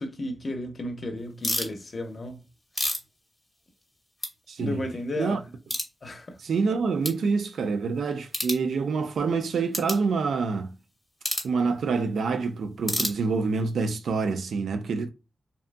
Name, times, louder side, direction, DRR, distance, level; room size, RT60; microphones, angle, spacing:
voice 1, 0.0-2.4 4.6-5.5 6.0-6.4, left 1 dB, 50° left, 0.7 m, -33 dB
sound 1, 1.4-1.7 2.4-3.9 4.2-4.3 4.8-4.9 5.7-5.9 6.5-6.6 7.0-7.2 8.3-8.6 9.7-10.0 11.2-11.5 12.8-13.6, left 1 dB, 10° left, 0.9 m, -30 dB
voice 2, 4.5-4.8 5.2-5.4 6.4-10.7 11.4-15.1, right 4 dB, 90° right, 0.4 m, -26 dB
2.7 x 2.2 x 2.5 m
cardioid pair, 80°, 0 cm